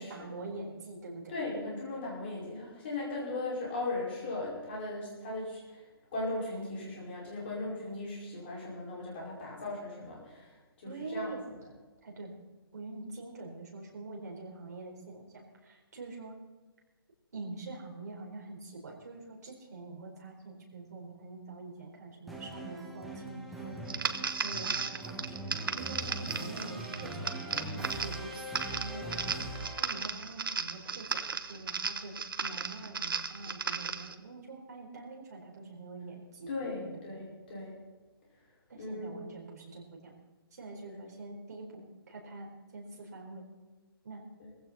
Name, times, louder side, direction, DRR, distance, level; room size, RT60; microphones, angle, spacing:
voice 1, 0.0-1.3 10.8-11.4 12.0-12.4 12.7-16.4 17.3-23.9 24.4-25.5 25.7-28.4 28.7-29.4 29.8-32.1 32.4-36.5 36.8-37.0 38.7-40.1 40.5-43.4 44.0-44.2, right 3 dB, 40° right, -1 dB, 4.3 m, -45 dB
voice 2, 1.3-5.8 6.1-11.4 36.5-37.8 38.8-39.2 40.9-41.0, left 2 dB, 25° left, -4 dB, 5.5 m, -38 dB
sound 1, 22.3-30.1, right 1 dB, ahead, 0.5 m, -41 dB
sound 2, 23.9-34.1, right 5 dB, 60° right, 1.1 m, -36 dB
18.5 x 15.5 x 4.3 m, 1.3 s
hypercardioid pair, 175°, 13 cm